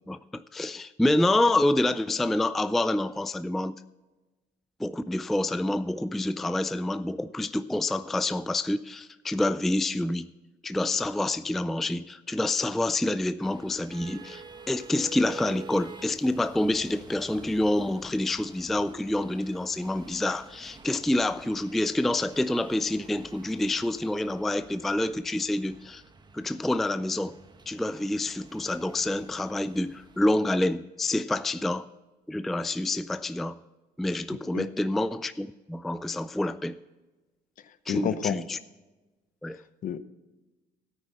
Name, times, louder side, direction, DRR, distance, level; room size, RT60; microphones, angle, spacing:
voice 1, 0.1-3.8 4.8-10.3 10.6-26.0 26.3-27.4 27.7-31.9 32.3-33.6 34.0-36.8 37.9-38.6 39.4-39.6, left 1 dB, ahead, 13 dB, 0.3 m, -27 dB
sound 1, 13.4-30.2, right 4 dB, 25° right, 1.0 m, -49 dB
voice 2, 34.3-34.7 37.9-38.4 39.8-40.0, left 8 dB, 50° left, 13 dB, 0.8 m, -29 dB
13.0 x 9.2 x 4.1 m, 1.1 s
cardioid pair, 110°, 17 cm